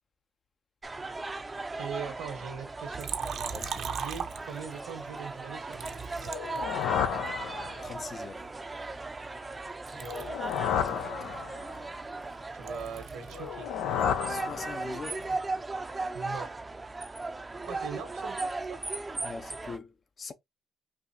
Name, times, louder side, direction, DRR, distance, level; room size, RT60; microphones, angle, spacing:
sound 1, 0.8-19.8, right 3 dB, 20° right, 0.5 m, -37 dB
voice 1, 1.8-6.1 10.0-10.2 12.5-13.7 16.1-16.5 17.6-18.8, right 7 dB, 90° right, 1.3 m, -41 dB
Liquid, 2.9-4.9 5.7-7.3 7.9-9.6 9.9-13.5 13.8-15.5, right 7 dB, 60° right, 0.7 m, -40 dB
voice 2, 3.5-3.8 7.8-8.5 10.8-11.4 14.3-15.3 19.2-20.3, left 4 dB, 40° left, 0.6 m, -42 dB
sound 2, 6.2-8.1 10.0-11.8 13.3-15.2, left 9 dB, 85° left, 0.4 m, -32 dB
4.1 x 2.6 x 2.7 m
cardioid pair, 90°, 0 cm